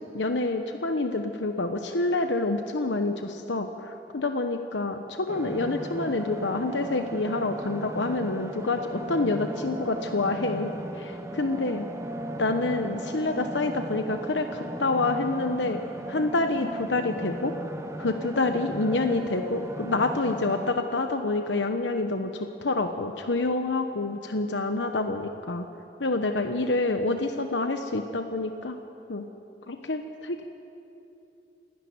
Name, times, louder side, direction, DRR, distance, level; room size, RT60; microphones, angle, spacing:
voice 1, 0.0-11.9 12.4-15.8 16.1-17.5 18.0-25.7 26.0-28.8 29.1-29.3 29.7-30.5, left 2 dB, 85° left, 6 dB, 1.1 m, -27 dB
sound 1, 5.3-20.7, right 1 dB, 15° right, 1.0 m, -36 dB
27.0 x 12.5 x 9.6 m, 2.9 s
head